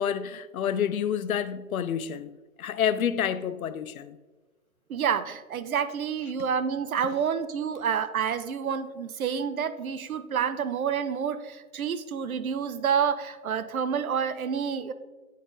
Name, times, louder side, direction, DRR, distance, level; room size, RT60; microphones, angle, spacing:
voice 1, 0.0-2.3 2.6-4.2, left 8 dB, 75° left, 0.6 m, -28 dB
voice 2, 4.9-14.9, right 7 dB, 75° right, 0.7 m, -28 dB
9.2 x 4.1 x 3.8 m
hypercardioid pair, 150°, 42 cm